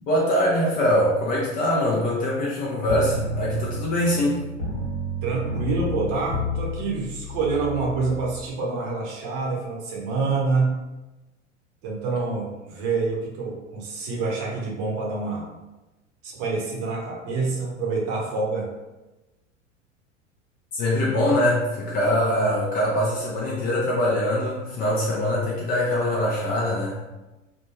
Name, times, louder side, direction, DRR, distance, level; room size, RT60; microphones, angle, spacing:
voice 1, 0.1-4.4 20.7-27.2, left 1 dB, 25° left, -5 dB, 0.5 m, -23 dB
sound 1, 2.9-8.4, equal, 55° left, 1.1 m, -31 dB
voice 2, 5.2-10.7 11.8-15.4 16.2-18.7, right 4 dB, 40° right, -3 dB, 0.8 m, -27 dB
2.5 x 2.2 x 2.9 m, 1.1 s
figure-of-eight pair, 85°, 39 cm